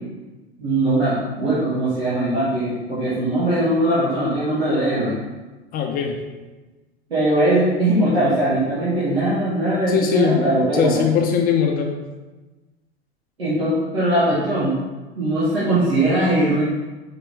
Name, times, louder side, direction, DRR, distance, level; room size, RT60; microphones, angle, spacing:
voice 1, 0.6-5.1 7.1-11.0 13.4-14.8 15.2-16.7, right 1 dB, 85° right, -10 dB, 1.4 m, -20 dB
voice 2, 5.7-6.2 9.9-10.5 10.7-11.9, left 7 dB, 30° left, 3 dB, 0.4 m, -20 dB
4.3 x 2.9 x 3.4 m, 1.2 s
hypercardioid pair, 90°, 30 cm